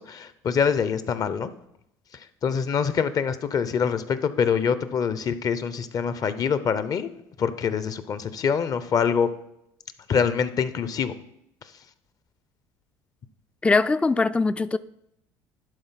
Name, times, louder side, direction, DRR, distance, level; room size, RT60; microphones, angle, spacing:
voice 1, 0.0-1.5 2.1-7.1 7.4-9.3 10.1-11.1, left 6 dB, 45° left, 0.7 m, -25 dB
voice 2, 13.6-14.8, left 3 dB, 15° left, 0.3 m, -21 dB
11.0 x 4.1 x 5.7 m
supercardioid pair, 80°, 9 cm